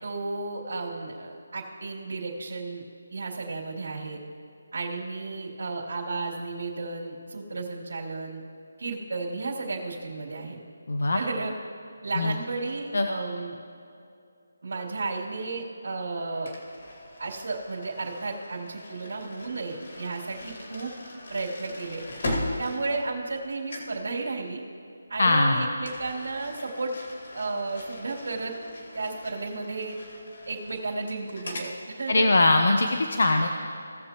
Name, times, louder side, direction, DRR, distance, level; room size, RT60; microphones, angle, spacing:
voice 1, 0.0-2.8 3.1-4.2 4.7-8.4 8.8-10.6 11.1-11.5 12.0-13.5 14.6-16.5 17.2-20.9 21.3-22.0 22.6-24.6 25.1-26.9 27.3-28.5 28.9-29.9 30.5-32.4, right 3 dB, 70° right, -3 dB, 2.6 m, -33 dB
voice 2, 10.9-11.2 12.2-12.3 12.9-13.1 25.2-25.7 32.1-33.5, left 2 dB, 70° left, 4 dB, 0.7 m, -21 dB
sound 1, 16.5-23.4 23.7-24.0 25.8-31.7, left 1 dB, 50° left, 2.1 m, -39 dB
18.0 x 7.0 x 3.0 m, 2.5 s
hypercardioid pair, 175°, 0 cm